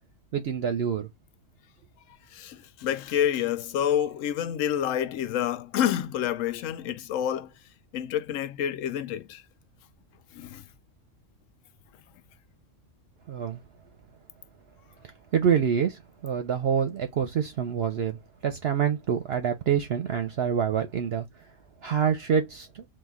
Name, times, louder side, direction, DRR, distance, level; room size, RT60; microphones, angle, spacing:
voice 1, 0.3-1.1 13.3-13.6 15.3-21.3 21.8-22.9, right 7 dB, 60° right, 0.8 m, -26 dB
voice 2, 2.3-7.5 7.9-9.4 10.3-10.6, left 10 dB, 80° left, 0.9 m, -28 dB
4.0 x 2.7 x 3.5 m
omnidirectional pair, 1.3 m